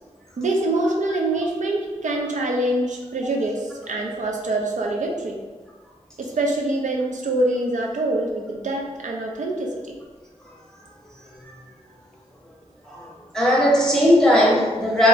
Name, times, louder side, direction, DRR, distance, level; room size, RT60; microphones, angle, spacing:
voice 1, 0.4-5.4 6.2-9.9, right 2 dB, 80° right, 0 dB, 0.4 m, -25 dB
voice 2, 13.3-15.1, equal, 5° left, -6 dB, 0.8 m, -17 dB
2.9 x 2.3 x 2.4 m, 1.3 s
wide cardioid pair, 50°, 12 cm